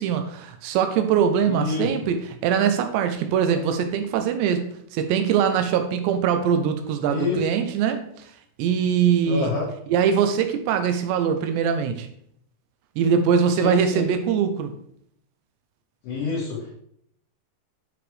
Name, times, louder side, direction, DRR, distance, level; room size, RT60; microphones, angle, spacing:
voice 1, 0.0-8.1 8.6-9.5 9.9-12.1 13.0-14.7, right 7 dB, 80° right, 7 dB, 2.6 m, -22 dB
voice 2, 1.5-1.9 7.1-7.4 9.3-9.7 13.5-14.1 16.0-16.7, left 4 dB, 80° left, -10 dB, 4.9 m, -27 dB
9.9 x 4.9 x 3.3 m, 0.69 s
omnidirectional pair, 5.5 m